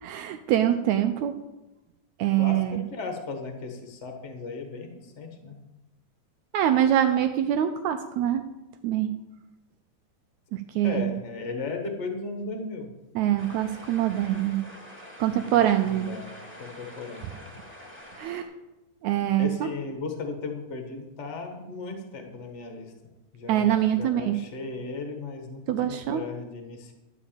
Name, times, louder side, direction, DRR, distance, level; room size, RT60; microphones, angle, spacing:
voice 1, 0.0-1.3 2.2-2.8 6.5-8.5 8.8-9.2 10.5-11.2 13.1-14.6 15.2-16.1 18.2-18.5 19.0-19.7 23.5-24.4 25.7-26.2, right 11 dB, 80° right, 8 dB, 1.7 m, -24 dB
voice 2, 2.4-5.6 10.8-12.9 15.3-16.3 16.6-17.5 19.4-22.9 23.3-26.9, left 3 dB, 35° left, 3 dB, 1.1 m, -36 dB
sound 1, 13.4-18.4, equal, 5° right, 1.7 m, -46 dB
12.5 x 5.1 x 8.8 m, 1.0 s
omnidirectional pair, 3.8 m